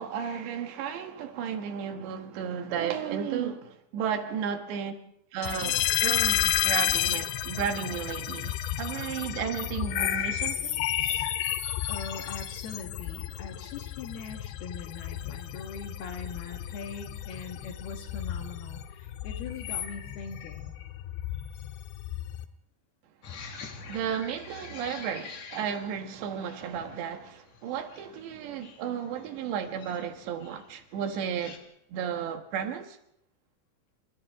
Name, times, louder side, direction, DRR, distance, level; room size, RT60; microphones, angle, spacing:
voice 1, 0.0-4.9 5.3-11.3 23.9-31.6 31.9-33.0, right 8 dB, 75° right, 3.5 m, -33 dB
sound 1, 5.4-22.5, left 12 dB, 90° left, 3.5 m, -32 dB
voice 2, 11.9-20.8, left 5 dB, 65° left, 3.4 m, -41 dB
sound 2, 23.2-31.6, left 5 dB, 45° left, 2.7 m, -47 dB
29.5 x 25.5 x 3.6 m
omnidirectional pair, 5.3 m